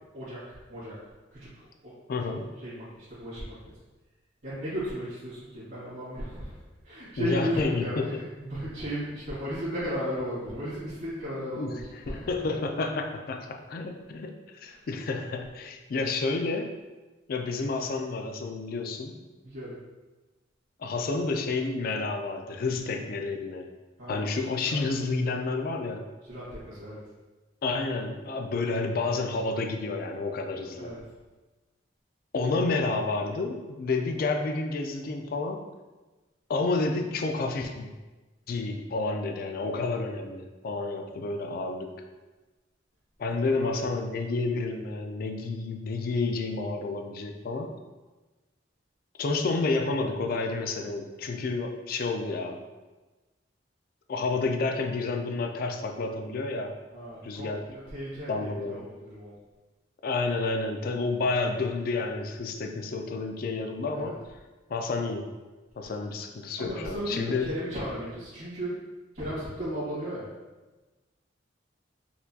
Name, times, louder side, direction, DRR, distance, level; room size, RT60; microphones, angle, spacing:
voice 1, 0.1-1.0 1.3-1.9 2.6-3.7 4.4-6.5 6.8-12.3 14.6-14.7 19.4-19.8 24.0-24.3 24.7-24.8 26.3-27.0 30.8-31.0 43.4-43.9 56.9-59.3 63.9-64.1 66.6-68.8 69.1-70.3, equal, 65° right, -13 dB, 1.4 m, -35 dB
voice 2, 2.1-2.5 7.2-8.2 11.6-16.7 17.3-19.2 20.8-23.7 24.1-26.1 27.6-30.9 32.3-35.6 36.5-37.9 38.5-41.9 43.2-47.7 49.2-52.6 54.1-56.8 57.2-57.6 58.3-58.8 60.0-64.2 64.7-65.3 65.8-67.5, left 3 dB, 50° left, 4 dB, 0.3 m, -30 dB
4.2 x 2.3 x 2.7 m, 1.2 s
head